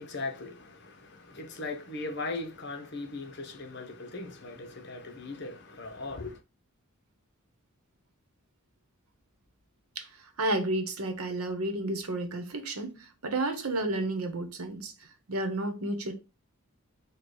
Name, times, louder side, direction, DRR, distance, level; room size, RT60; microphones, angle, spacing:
voice 1, 0.0-6.4, left 3 dB, 50° left, 0.8 m, -39 dB
voice 2, 10.0-16.1, right 2 dB, 85° right, 1.0 m, -32 dB
4.4 x 2.3 x 4.7 m
head